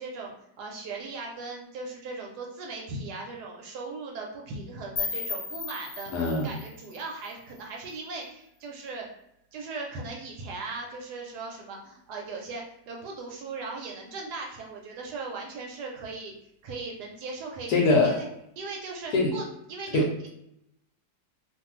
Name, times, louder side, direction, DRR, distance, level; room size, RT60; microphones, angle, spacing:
voice 1, 0.0-9.1 9.5-16.3 16.6-18.3 18.6-19.4 19.7-20.3, right 3 dB, 70° right, 0 dB, 1.0 m, -38 dB
sound 1, 5.0-7.9, left 5 dB, 85° left, 1.4 m, -36 dB
voice 2, 6.1-6.5 17.7-18.2 19.1-19.3 19.9-20.1, left 2 dB, 70° left, 0 dB, 1.1 m, -22 dB
2.6 x 2.5 x 2.9 m, 0.78 s
omnidirectional pair, 2.0 m